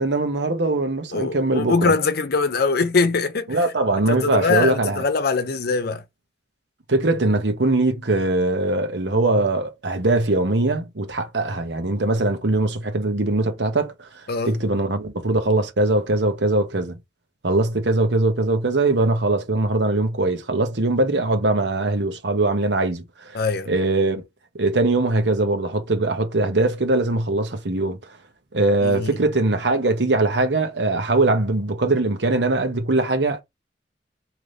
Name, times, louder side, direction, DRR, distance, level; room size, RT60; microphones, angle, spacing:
voice 1, 0.0-1.9 3.5-5.0 6.9-14.1 14.4-17.0 17.4-23.0 23.7-24.2 24.6-28.0 28.5-33.4, right 2 dB, 75° right, 1.0 m, -21 dB
voice 2, 1.1-3.6 4.1-6.0 14.3-14.6 23.3-23.7 28.8-29.2, left 4 dB, 60° left, 0.6 m, -22 dB
3.3 x 2.9 x 3.9 m
head